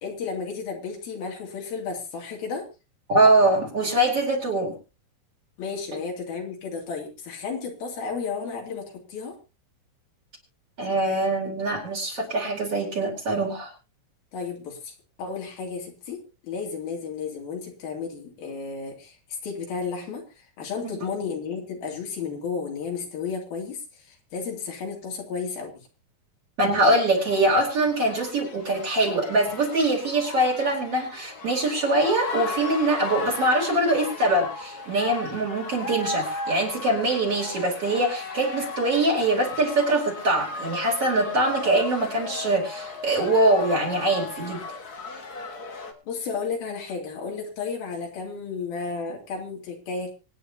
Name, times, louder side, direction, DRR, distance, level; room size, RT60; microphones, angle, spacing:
voice 1, 0.0-2.7 5.6-9.4 14.3-19.2 19.4-25.9 46.1-50.1, left 5 dB, 80° left, 1 dB, 4.6 m, -33 dB
voice 2, 3.1-4.8 10.8-13.7 20.8-20.9 26.6-44.6, right 1 dB, 40° right, 2 dB, 4.2 m, -23 dB
sound 1, 27.1-45.9, left 3 dB, 50° left, 1.2 m, -36 dB
25.0 x 9.6 x 2.8 m, 0.30 s
omnidirectional pair, 4.2 m